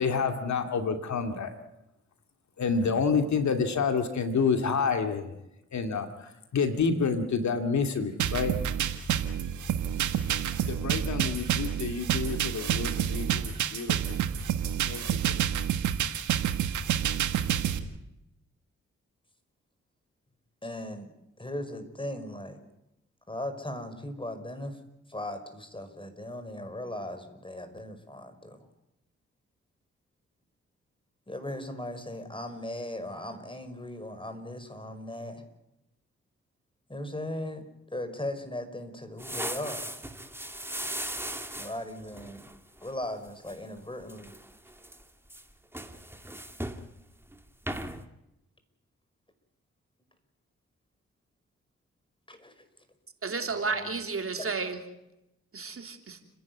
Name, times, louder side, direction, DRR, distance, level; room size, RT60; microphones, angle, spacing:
voice 1, 0.0-1.5 2.6-5.3 5.7-8.5 10.0-10.1 10.7-14.2 14.9-15.0, left 5 dB, 70° left, 6 dB, 2.4 m, -28 dB
sound 1, 8.2-17.8, right 9 dB, 85° right, 1.5 m, -28 dB
voice 2, 20.6-21.1 21.4-22.6 23.3-24.8 25.1-28.7 31.3-35.4 36.9-39.9 41.6-42.5 42.8-44.4 52.3-52.7 53.5-53.9 54.4-54.5, left 1 dB, 15° left, 8 dB, 5.5 m, -38 dB
sound 2, 39.2-42.9 43.3-43.5 44.0-45.0 45.3-46.9 47.2-47.4 47.7-48.0, right 1 dB, 10° right, 2.5 m, -38 dB
voice 3, 53.2-54.8 55.5-56.2, right 4 dB, 50° right, 5 dB, 3.3 m, -32 dB
30.0 x 11.0 x 9.6 m, 0.90 s
supercardioid pair, 45°, 29 cm